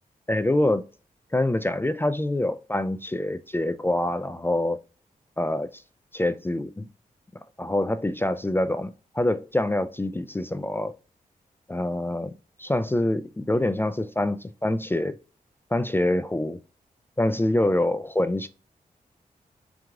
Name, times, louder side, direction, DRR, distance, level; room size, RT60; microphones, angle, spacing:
voice 1, 0.3-0.8 1.3-4.8 5.4-5.8 6.1-6.9 7.6-10.9 11.7-12.3 12.6-15.1 15.7-16.6 17.2-18.5, left 1 dB, 15° left, 0.4 m, -25 dB
4.6 x 2.4 x 3.7 m
cardioid pair, 50°, 15 cm